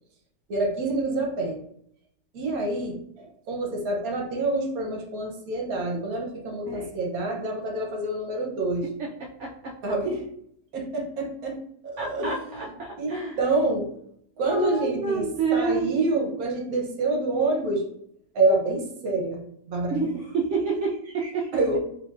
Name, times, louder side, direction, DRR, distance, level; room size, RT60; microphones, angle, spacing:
voice 1, 0.5-1.6 2.3-8.9 9.8-10.2 10.7-11.6 11.8-12.7 13.0-13.9 14.4-17.8 18.3-20.0 21.5-21.8, right 2 dB, 60° right, 1 dB, 1.2 m, -27 dB
voice 2, 12.0-13.4 14.5-15.9 19.9-21.5, right 4 dB, 80° right, -2 dB, 0.6 m, -28 dB
4.2 x 3.2 x 2.4 m, 0.71 s
omnidirectional pair, 1.9 m